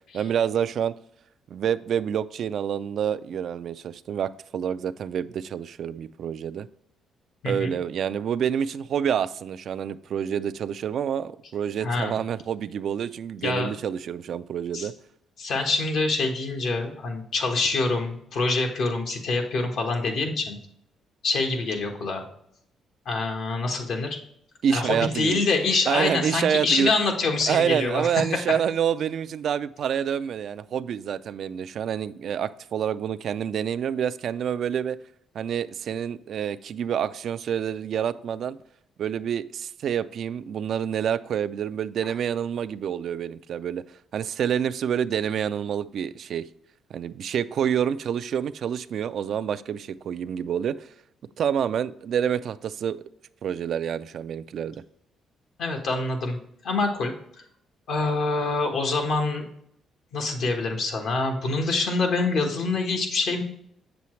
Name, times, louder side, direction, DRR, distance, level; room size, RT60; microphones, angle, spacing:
voice 1, 0.1-0.9 1.5-6.7 7.4-14.9 24.6-25.4 25.9-26.9 27.5-35.0 35.3-38.6 39.0-43.8 44.1-46.4 46.9-50.9 51.4-53.0 53.4-54.8, right 8 dB, 65° right, 14 dB, 0.3 m, -27 dB
voice 2, 7.4-7.7 11.8-12.2 13.4-13.7 14.7-14.9 15.4-20.6 21.2-22.2 23.0-24.2 24.7-28.2 55.6-56.4 56.6-57.1 57.9-59.5 60.1-63.4, left 3 dB, 70° left, 3 dB, 1.4 m, -25 dB
7.5 x 7.0 x 3.1 m, 0.72 s
cardioid pair, 90°, 0 cm